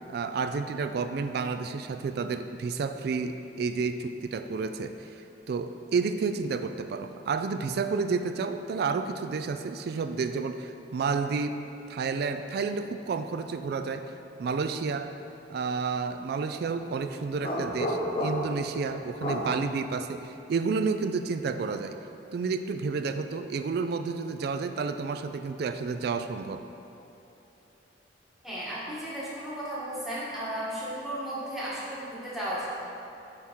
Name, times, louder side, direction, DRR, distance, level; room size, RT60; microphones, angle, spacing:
voice 1, 0.1-11.6 11.9-14.1 14.4-15.1 15.5-22.0 22.3-26.7, right 4 dB, 60° right, 9 dB, 0.3 m, -30 dB
sound 1, 17.4-18.6 19.2-19.5, equal, 35° left, 0.7 m, -30 dB
voice 2, 28.4-32.7, right 1 dB, ahead, -10 dB, 1.6 m, -34 dB
8.6 x 3.6 x 4.5 m, 2.9 s
head